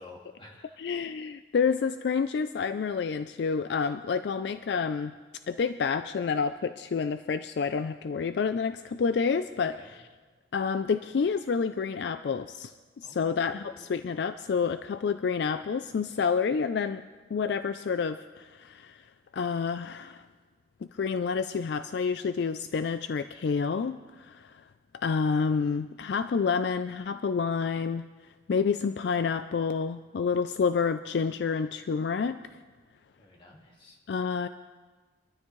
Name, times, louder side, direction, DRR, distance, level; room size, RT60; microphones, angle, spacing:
voice 1, 0.0-0.8 9.8-9.9 13.0-13.9 33.2-34.0, left 2 dB, 25° left, -1 dB, 2.0 m, -51 dB
voice 2, 0.8-5.1 5.5-10.0 10.5-17.0 17.3-19.0 19.3-20.2 20.9-24.6 24.9-28.1 28.5-32.4 34.1-34.5, left 5 dB, 60° left, 11 dB, 0.3 m, -29 dB
23.5 x 13.0 x 3.1 m, 1.4 s
head